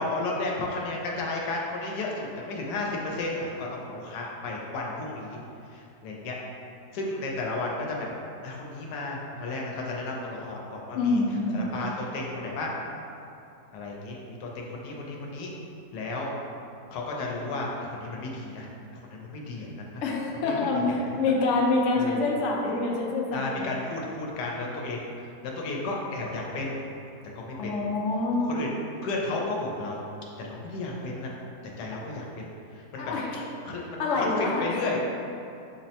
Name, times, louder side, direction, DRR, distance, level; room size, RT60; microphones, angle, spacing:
voice 1, 0.0-6.4 6.9-8.1 8.4-11.2 11.5-12.7 13.7-15.5 15.9-16.3 16.9-18.7 18.9-20.0 20.3-21.2 21.9-22.2 23.3-26.7 27.3-27.7 28.4-28.7 29.0-30.0 30.4-31.3 31.8-32.4 32.7-33.1 33.6-35.0, left 2 dB, 90° left, -2 dB, 1.2 m, -33 dB
voice 2, 10.9-11.7 20.0-23.6 27.6-28.6 33.0-33.4 34.0-34.5, left 3 dB, 65° left, -2 dB, 0.8 m, -26 dB
5.9 x 2.1 x 2.7 m, 2.8 s
omnidirectional pair, 1.7 m